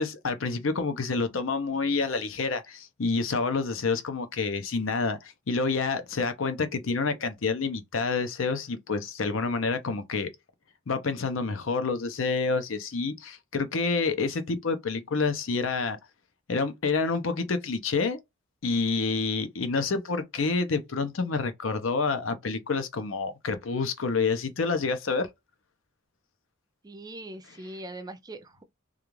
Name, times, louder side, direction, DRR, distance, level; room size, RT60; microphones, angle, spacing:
voice 1, 0.0-10.3 10.9-16.0 16.5-18.2 18.6-25.3, left 4 dB, 70° left, 0.6 m, -28 dB
voice 2, 26.8-28.6, right 1 dB, 20° right, 0.4 m, -41 dB
2.4 x 2.4 x 3.0 m
head